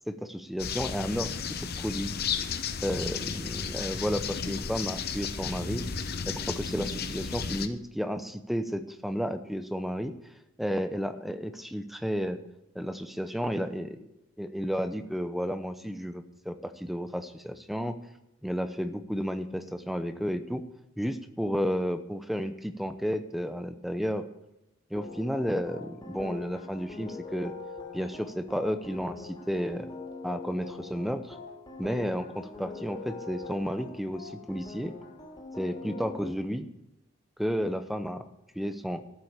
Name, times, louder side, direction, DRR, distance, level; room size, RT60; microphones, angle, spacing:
voice 1, 0.1-1.3 1.8-2.1 2.8-5.8 6.3-10.1 10.6-12.4 12.7-14.0 14.4-17.9 18.4-20.6 21.0-24.3 24.9-27.5 27.9-29.9 30.2-31.4 31.8-34.9 35.6-36.7 37.4-38.2 38.5-39.0, equal, ahead, 9 dB, 0.7 m, -32 dB
sound 1, 0.6-7.7, left 6 dB, 50° left, 0.8 m, -33 dB
sound 2, 24.9-36.2, left 3 dB, 25° left, 3.0 m, -43 dB
13.0 x 7.5 x 6.7 m, 0.91 s
head